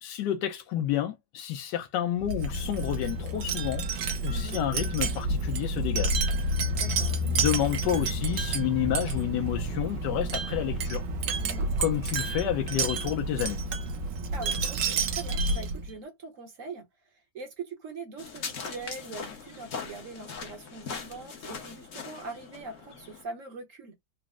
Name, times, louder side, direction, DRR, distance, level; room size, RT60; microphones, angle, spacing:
voice 1, 0.0-3.9 4.2-6.2 7.3-11.0 11.8-13.6, left 12 dB, 85° left, 1.2 m, -30 dB
Wind chime, 2.2-15.9, right 2 dB, 90° right, 1.5 m, -29 dB
voice 2, 4.3-4.6 6.7-7.2 11.4-11.7 14.3-16.8 17.3-23.9, right 4 dB, 55° right, 1.2 m, -42 dB
sound 1, 18.2-23.2, left 5 dB, 55° left, 1.1 m, -40 dB
4.2 x 2.0 x 3.5 m
omnidirectional pair, 1.9 m